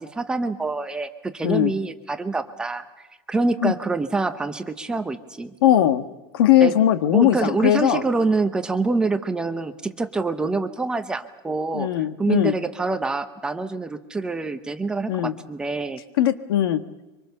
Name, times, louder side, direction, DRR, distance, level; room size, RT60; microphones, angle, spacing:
voice 1, 0.0-2.8 3.3-5.5 6.6-6.8 7.1-11.9 12.2-16.0, right 3 dB, 5° right, 8 dB, 0.7 m, -26 dB
voice 2, 5.6-6.0 6.3-8.0 11.7-12.6 15.1-15.3 16.2-16.8, left 11 dB, 90° left, 11 dB, 1.5 m, -19 dB
24.5 x 24.0 x 6.8 m, 1.1 s
supercardioid pair, 180°, 12 cm